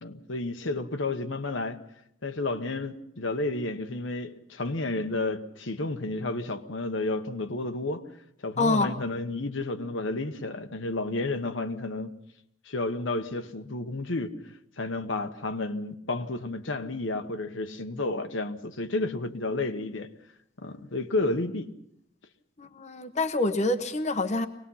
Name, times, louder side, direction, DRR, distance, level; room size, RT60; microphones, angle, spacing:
voice 1, 0.0-1.8 2.2-8.1 8.4-12.2 12.6-14.4 14.8-20.1 20.6-21.7, left 2 dB, 75° left, 1.2 m, -31 dB
voice 2, 8.6-8.9 22.6-24.5, left 2 dB, 35° left, 0.9 m, -26 dB
24.0 x 19.0 x 5.7 m
head